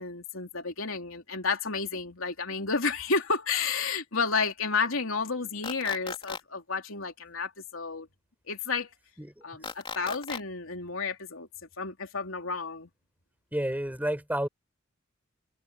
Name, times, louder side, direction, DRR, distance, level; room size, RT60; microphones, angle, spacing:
voice 1, 0.0-8.1 8.5-8.9 9.4-11.5 11.8-12.9, left 4 dB, 90° left, 3.2 m, -31 dB
sound 1, 5.6-6.4 9.6-10.4, left 4 dB, 25° left, 3.5 m, -37 dB
voice 2, 13.5-14.5, right 1 dB, 10° right, 5.7 m, -31 dB
head